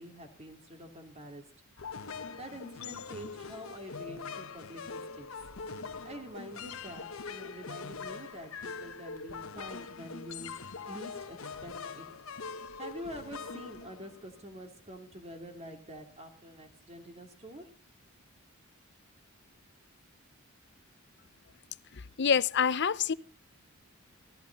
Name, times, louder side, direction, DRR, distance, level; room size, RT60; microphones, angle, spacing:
voice 1, 0.0-1.4 2.4-5.3 6.0-12.1 12.8-17.7, equal, 30° right, 3.0 m, -46 dB
sound 1, 1.8-14.5, left 5 dB, 75° left, 1.0 m, -43 dB
voice 2, 21.9-23.1, left 7 dB, 55° left, 0.6 m, -27 dB
16.0 x 16.0 x 4.1 m
head